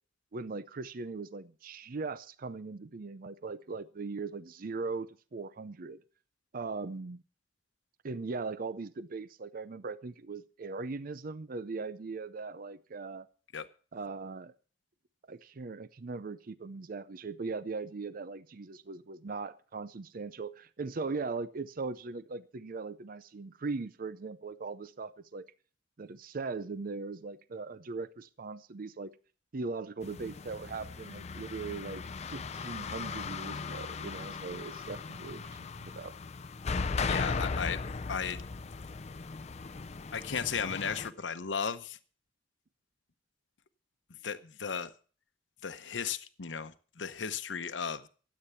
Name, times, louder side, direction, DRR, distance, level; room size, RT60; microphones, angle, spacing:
voice 1, 0.3-6.0 6.5-7.2 8.0-13.3 13.9-14.5 15.3-25.5 26.0-29.1 29.5-32.0 32.3-36.1, right 4 dB, 50° right, 15 dB, 0.6 m, -39 dB
sound 1, 30.0-41.1, left 4 dB, 40° left, 0.5 m, -37 dB
voice 2, 37.1-37.8 38.1-38.4 40.1-42.0 44.1-44.9 45.6-48.1, left 6 dB, 90° left, 10 dB, 0.8 m, -35 dB
13.0 x 8.7 x 6.9 m, 0.41 s
head